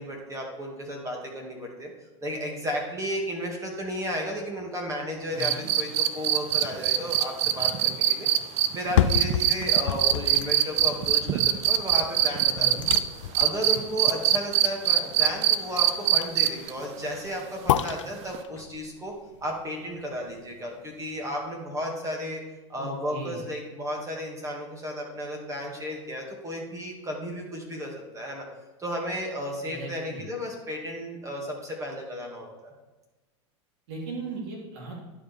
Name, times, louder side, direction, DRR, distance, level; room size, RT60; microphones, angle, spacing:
voice 1, 0.0-1.9 2.2-8.3 8.7-12.8 13.3-19.1 19.4-22.4 22.7-28.4 28.8-32.7, equal, 20° right, 0 dB, 2.3 m, -33 dB
voice 2, 5.3-5.7 12.5-12.9 22.8-23.4 29.7-30.2 33.9-34.9, right 2 dB, 60° right, -2 dB, 3.1 m, -37 dB
sound 1, 5.4-13.0 13.3-16.7 18.3-18.4, right 12 dB, 45° right, 0.6 m, -22 dB
sound 2, 8.7-20.7 21.1-21.2, left 11 dB, 80° left, 0.4 m, -32 dB
11.0 x 5.0 x 4.6 m, 1.1 s
hypercardioid pair, 110°, 16 cm